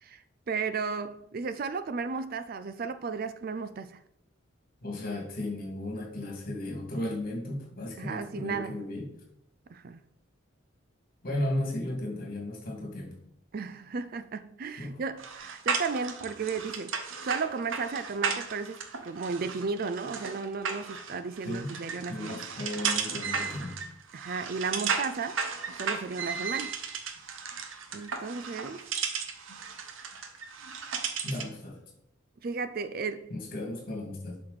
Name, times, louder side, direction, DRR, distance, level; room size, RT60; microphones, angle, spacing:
voice 1, 0.0-4.0 8.0-8.8 9.7-10.0 13.5-17.0 17.2-22.4 24.1-25.4 25.8-26.8 27.9-28.8 32.4-33.3, right 5 dB, 45° right, 0.4 m, -34 dB
voice 2, 4.8-9.1 11.2-13.2 14.8-15.0 21.4-21.8 22.1-23.8 31.2-31.8 33.3-34.4, left 1 dB, 45° left, 2.2 m, -35 dB
sound 1, 15.2-31.6, right 5 dB, 75° right, 0.9 m, -35 dB
7.6 x 5.9 x 4.1 m
head